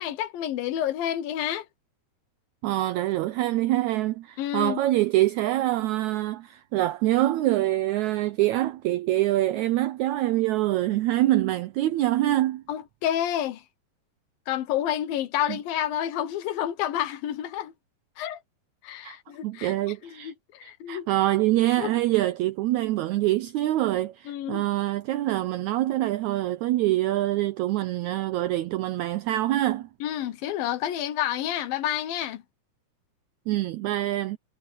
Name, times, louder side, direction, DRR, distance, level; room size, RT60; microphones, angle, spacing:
voice 1, 0.0-1.7 4.4-4.8 12.7-13.6 14.5-17.7 18.2-18.4 18.8-19.7 20.0-21.1 21.5-21.9 24.3-24.6 30.0-32.4, left 11 dB, 90° left, 3.0 m, -29 dB
voice 2, 2.6-12.6 19.0-19.2 19.4-20.3 20.6-29.9 33.5-34.4, right 15 dB, 90° right, 1.6 m, -25 dB
omnidirectional pair, 4.0 m